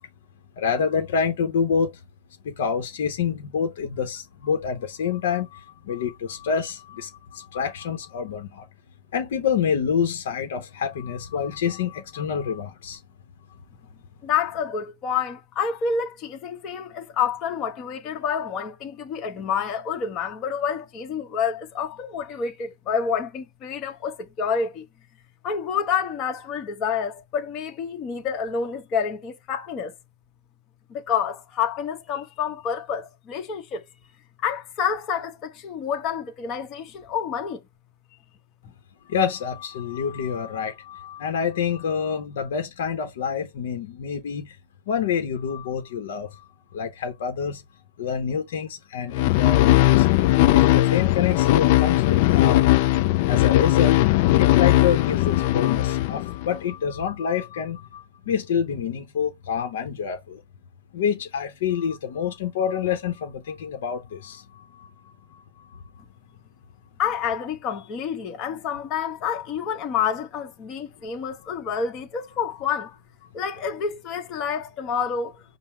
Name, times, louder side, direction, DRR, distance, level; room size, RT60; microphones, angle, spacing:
voice 1, 0.6-1.9 2.5-5.6 5.9-8.6 9.1-13.0 39.1-44.5 44.9-46.3 46.7-47.6 48.0-50.1 50.5-52.6 53.3-54.0 54.4-60.4 60.9-64.9 65.3-65.4 71.7-71.8, left 7 dB, 70° left, 0.8 m, -27 dB
voice 2, 14.2-24.8 25.4-29.9 30.9-33.8 34.4-37.6 67.0-72.9 73.3-75.4, left 7 dB, 30° left, 1.0 m, -28 dB
sound 1, 49.1-56.6, left 16 dB, 50° left, 0.3 m, -18 dB
5.4 x 2.0 x 4.4 m
hypercardioid pair, 140°, 0 cm